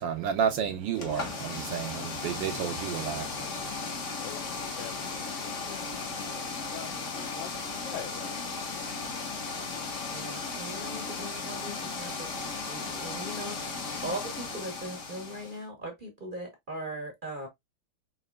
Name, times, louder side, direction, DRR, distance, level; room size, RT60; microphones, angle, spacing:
voice 1, 0.0-3.5, right 8 dB, 70° right, 1.2 m, -31 dB
sound 1, 0.9-15.6, left 4 dB, 50° left, 1.0 m, -36 dB
voice 2, 1.6-2.1 3.4-3.9 4.2-8.4, left 10 dB, 80° left, 1.0 m, -46 dB
voice 3, 10.1-13.6 14.0-17.5, right 1 dB, 40° right, 0.8 m, -39 dB
5.6 x 2.9 x 2.2 m
omnidirectional pair, 2.4 m